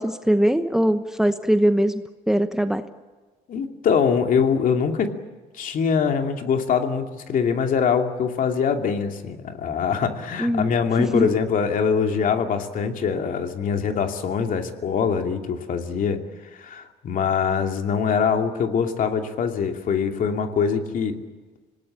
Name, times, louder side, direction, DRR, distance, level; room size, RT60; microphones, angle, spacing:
voice 1, 0.0-2.0 2.3-2.8 10.4-10.8 11.1-11.3, right 1 dB, 5° right, 9 dB, 1.0 m, -21 dB
voice 2, 3.5-5.1 5.5-16.2 16.6-21.2, left 6 dB, 55° left, 4 dB, 2.7 m, -23 dB
26.5 x 19.0 x 8.8 m, 1.3 s
cardioid pair, 110°, 17 cm